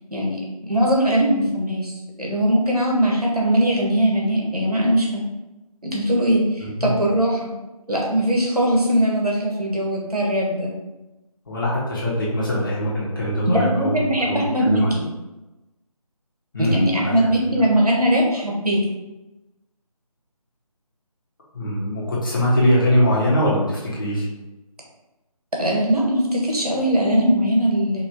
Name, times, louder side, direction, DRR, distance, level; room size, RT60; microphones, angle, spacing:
voice 1, 0.1-5.2 5.8-7.5 7.9-10.7 13.5-15.0 16.6-18.8 25.6-28.0, equal, 85° right, -2 dB, 1.3 m, -20 dB
voice 2, 6.6-6.9 11.5-15.0 16.5-17.7 21.5-24.3, equal, 35° left, -6 dB, 1.2 m, -22 dB
4.7 x 2.9 x 2.8 m, 1.0 s
figure-of-eight pair, 160°, 19 cm